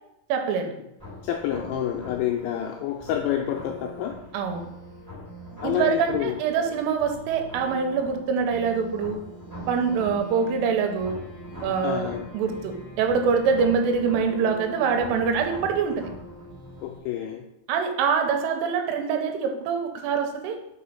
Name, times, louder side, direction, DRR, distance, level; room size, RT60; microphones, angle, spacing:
voice 1, 0.3-0.7 4.3-4.7 5.6-9.2 9.7-11.2 11.6-16.1 17.7-20.6, right 6 dB, 85° right, 5 dB, 3.3 m, -24 dB
sound 1, 1.0-17.0, equal, 10° left, 0.9 m, -41 dB
voice 2, 1.2-4.2 5.6-6.4 11.8-12.3 16.8-17.4, left 10 dB, 90° left, 2 dB, 2.6 m, -28 dB
6.2 x 5.0 x 5.6 m, 0.82 s
omnidirectional pair, 5.9 m